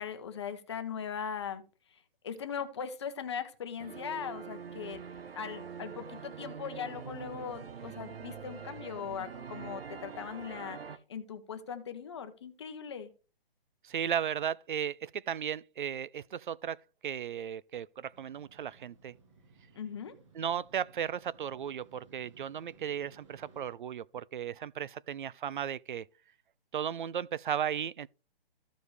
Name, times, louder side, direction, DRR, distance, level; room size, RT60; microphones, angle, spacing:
voice 1, 0.0-1.6 2.2-5.0 5.3-10.8 11.1-13.1 19.8-20.1, left 7 dB, 30° left, 0.8 m, -39 dB
sound 1, 3.8-11.0, right 6 dB, 75° right, 1.0 m, -44 dB
voice 2, 13.8-16.8 17.0-19.2 20.3-26.1 26.7-28.1, right 9 dB, 55° right, 0.4 m, -35 dB
Motorcycle, 18.1-23.7, right 3 dB, 30° right, 1.8 m, -60 dB
14.5 x 5.1 x 3.2 m
hypercardioid pair, 170°, 30 cm